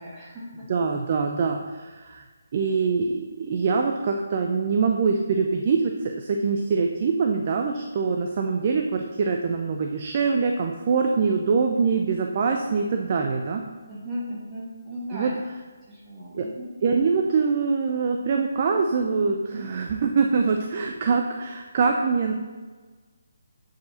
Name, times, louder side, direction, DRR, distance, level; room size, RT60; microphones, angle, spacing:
voice 1, 0.0-0.7 13.9-15.4 15.9-16.7, equal, 20° right, -6 dB, 1.7 m, -36 dB
voice 2, 0.7-2.2 2.5-13.6 15.1-15.3 16.3-16.5 16.8-22.3, right 5 dB, 40° right, 3 dB, 0.4 m, -24 dB
7.5 x 4.8 x 2.8 m, 1.4 s
figure-of-eight pair, 155°, 0 cm